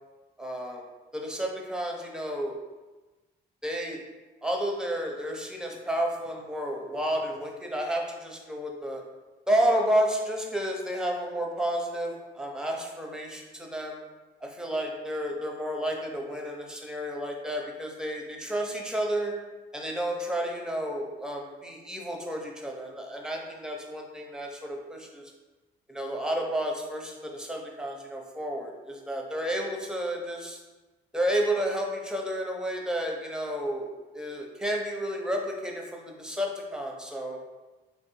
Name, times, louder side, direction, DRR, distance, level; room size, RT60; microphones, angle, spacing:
voice 1, 0.4-0.8 1.1-2.6 3.6-4.0 4.4-9.0 9.5-14.0 14.4-19.3 19.7-25.3 25.9-30.6 31.1-37.4, right 1 dB, 5° right, 1 dB, 0.7 m, -31 dB
3.2 x 2.6 x 4.4 m, 1.2 s
cardioid pair, 90°, 20 cm